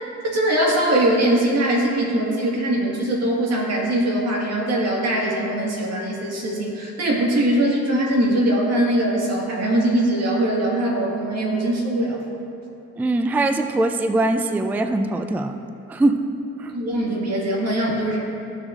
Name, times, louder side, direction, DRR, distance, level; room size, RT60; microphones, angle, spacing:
voice 1, 0.3-12.2 16.7-18.2, right 1 dB, 55° right, -2 dB, 1.8 m, -21 dB
voice 2, 13.0-15.6 15.9-16.2 16.6-16.8, right 2 dB, 5° right, 7 dB, 0.3 m, -21 dB
14.0 x 6.1 x 2.5 m, 2.9 s
cardioid pair, 90°, 30 cm